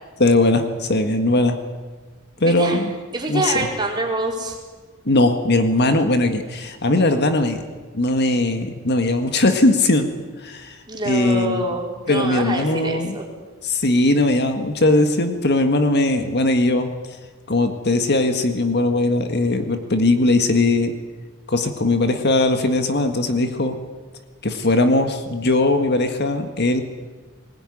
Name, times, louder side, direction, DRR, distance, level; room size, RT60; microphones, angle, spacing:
voice 1, 0.2-1.6 2.4-2.9 3.3-3.7 5.1-7.6 7.9-10.1 10.4-10.8 11.0-11.7 12.1-13.2 13.6-16.9 17.5-20.9 21.5-23.8 24.4-26.8, left 2 dB, 55° left, 7 dB, 1.7 m, -19 dB
voice 2, 2.4-2.8 3.1-4.6 10.9-13.2, right 2 dB, 20° right, -1 dB, 4.6 m, -25 dB
20.5 x 20.0 x 10.0 m, 1.4 s
head